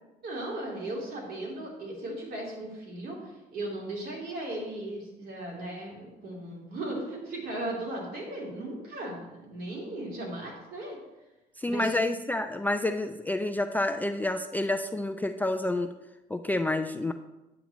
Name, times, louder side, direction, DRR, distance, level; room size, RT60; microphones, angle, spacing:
voice 1, 0.2-11.0 11.6-12.0, right 1 dB, 65° right, -3 dB, 3.3 m, -37 dB
voice 2, 11.6-15.9 16.3-17.1, left 2 dB, 10° left, 7 dB, 0.3 m, -29 dB
9.5 x 8.3 x 3.0 m, 1.0 s
cardioid pair, 110°, 17 cm